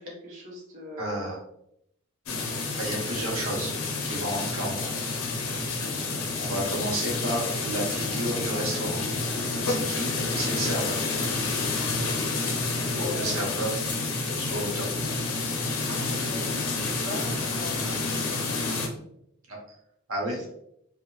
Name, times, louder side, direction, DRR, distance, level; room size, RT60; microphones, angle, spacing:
voice 1, 0.0-1.2 12.8-13.3 15.9-18.0 20.3-20.5, left 1 dB, 35° right, -5 dB, 0.9 m, -40 dB
voice 2, 1.0-1.4 2.8-3.7 4.0-5.1 6.4-9.0 9.6-11.0 12.9-13.7 14.4-14.9 19.5-19.6 20.1-20.4, right 1 dB, 75° right, -2 dB, 0.8 m, -31 dB
sound 1, 2.3-18.9, left 3 dB, 85° left, 0.6 m, -29 dB
2.6 x 2.1 x 2.9 m, 0.75 s
head